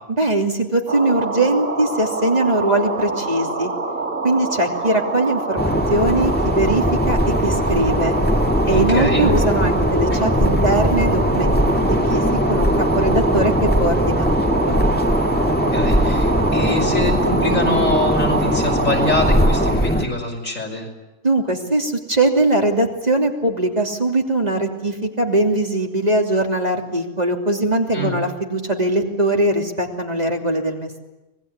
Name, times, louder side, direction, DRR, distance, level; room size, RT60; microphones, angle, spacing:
voice 1, 0.2-3.7 4.2-8.2 8.6-14.8 21.2-31.0, right 1 dB, 30° right, 1 dB, 3.1 m, -21 dB
sound 1, 0.9-19.8, right 3 dB, 90° right, 2.6 m, -25 dB
sound 2, 5.6-20.1, equal, 5° left, 1.8 m, -20 dB
voice 2, 8.7-9.3 10.1-10.2 15.7-20.9 27.9-28.1, left 2 dB, 85° left, 2 dB, 5.8 m, -24 dB
25.5 x 20.0 x 9.8 m, 1.1 s
omnidirectional pair, 1.3 m